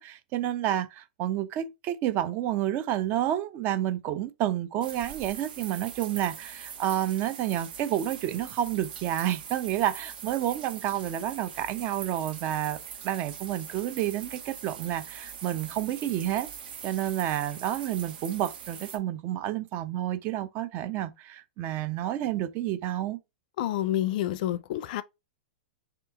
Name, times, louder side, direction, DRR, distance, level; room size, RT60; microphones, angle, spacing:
voice 1, 0.0-12.8 13.0-16.5 16.8-23.2, right 12 dB, 35° right, 0.5 m, -30 dB
sound 1, 4.8-19.0, right 7 dB, 65° right, 1.1 m, -42 dB
voice 2, 23.6-25.0, left 13 dB, 55° left, 0.5 m, -28 dB
3.4 x 3.0 x 3.5 m
hypercardioid pair, 125°, 5 cm